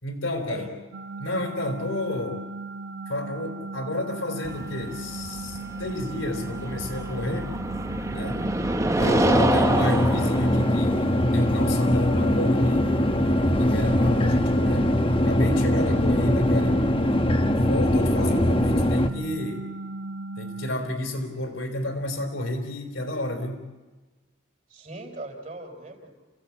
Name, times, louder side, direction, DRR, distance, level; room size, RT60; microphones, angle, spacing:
voice 1, 0.0-0.7 1.2-2.5 3.1-7.6 8.1-8.5 8.9-15.0 15.3-16.8 17.4-19.7 20.4-23.7, left 1 dB, 85° left, 5 dB, 3.6 m, -31 dB
sound 1, 0.9-20.7, right 3 dB, 90° right, 1.2 m, -37 dB
sound 2, 4.4-13.3, right 1 dB, 15° right, 0.7 m, -28 dB
sound 3, 9.0-19.1, left 1 dB, 30° left, 1.0 m, -22 dB
voice 2, 24.7-26.1, right 2 dB, 40° right, 3 dB, 4.2 m, -39 dB
29.0 x 16.5 x 8.6 m, 1.3 s
head